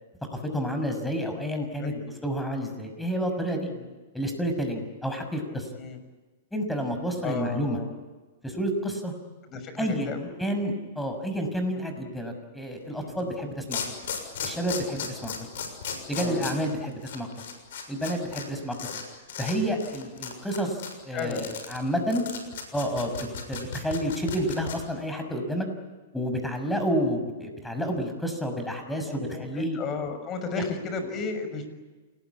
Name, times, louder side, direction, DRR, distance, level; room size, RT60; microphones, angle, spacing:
voice 1, 0.3-1.9 2.2-3.7 4.1-5.7 6.5-7.8 8.4-9.1 9.8-13.8 14.4-15.3 16.1-17.3 17.9-18.7 19.4-22.2 22.7-25.7 26.1-29.8, equal, 5° left, 6 dB, 6.3 m, -30 dB
voice 2, 7.2-7.9 9.5-10.3 13.0-13.3 16.2-16.5 21.1-21.5 29.0-31.7, left 4 dB, 30° left, 8 dB, 6.5 m, -34 dB
sound 1, 13.2-13.3 13.7-18.4 18.7-19.0 19.3-19.5 19.8-24.7, left 7 dB, 70° left, 6.7 m, -35 dB
28.5 x 20.5 x 9.7 m, 1.3 s
hypercardioid pair, 125°, 0 cm